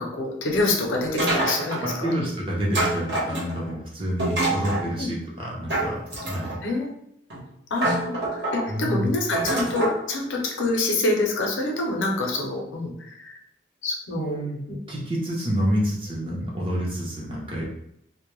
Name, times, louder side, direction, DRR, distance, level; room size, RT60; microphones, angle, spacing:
voice 1, 0.0-2.1 3.3-3.4 5.0-5.1 6.6-6.9 7.7-12.9 13.2-13.3 13.8-14.4, left 2 dB, 80° left, 0 dB, 0.6 m, -26 dB
sound 1, 1.2-2.0 2.7-3.7 4.2-4.9 5.7-6.6 7.3-7.4 7.8-8.6 9.3-10.0, right 1 dB, 60° right, 1.0 m, -26 dB
voice 2, 1.8-6.0 6.2-6.6 8.7-9.1 9.4-9.5 14.1-14.6 14.9-17.6, equal, 25° right, -3 dB, 0.6 m, -28 dB
2.1 x 2.1 x 3.0 m, 0.77 s
head